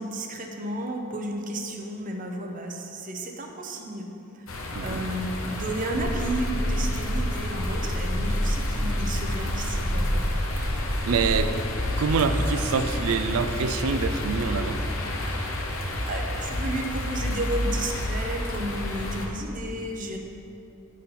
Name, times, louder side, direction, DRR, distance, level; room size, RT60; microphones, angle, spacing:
voice 1, 0.0-4.1 4.3-4.4 4.8-10.2 16.0-20.2, right 1 dB, 40° right, 2 dB, 0.7 m, -32 dB
sound 1, 4.5-19.3, left 1 dB, 80° left, 0.8 m, -30 dB
sound 2, 6.0-11.3, equal, 30° left, 0.8 m, -29 dB
voice 2, 11.1-11.6 12.0-14.8, right 5 dB, 85° right, 10 dB, 0.4 m, -26 dB
8.2 x 4.2 x 5.6 m, 2.9 s
head